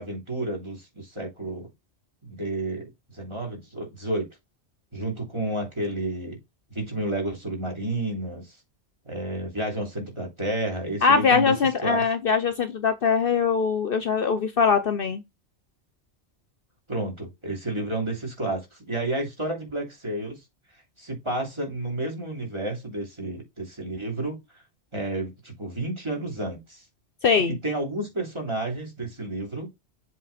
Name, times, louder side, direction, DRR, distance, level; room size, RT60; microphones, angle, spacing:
voice 1, 0.0-1.7 2.2-4.3 4.9-6.4 6.7-8.5 9.0-11.5 11.8-12.0 16.9-20.4 21.0-24.4 24.9-26.8 27.5-29.7, right 1 dB, 25° right, 3.0 m, -31 dB
voice 2, 11.0-15.2 27.2-27.6, left 5 dB, 55° left, 0.9 m, -22 dB
7.5 x 3.8 x 4.1 m
omnidirectional pair, 1.2 m